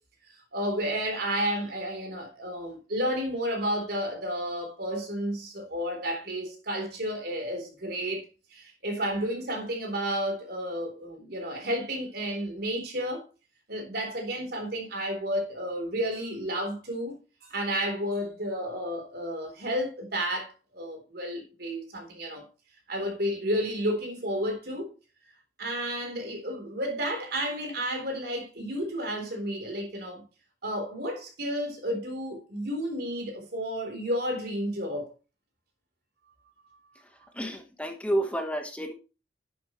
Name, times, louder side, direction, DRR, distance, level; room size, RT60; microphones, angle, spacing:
voice 1, 0.5-8.3 8.5-13.2 13.7-22.5 22.9-24.9 25.6-30.2 30.6-35.1, equal, 60° right, 3.8 m, -31 dB
voice 2, 37.3-38.9, right 1 dB, 5° left, 1.2 m, -30 dB
11.0 x 8.6 x 3.1 m
head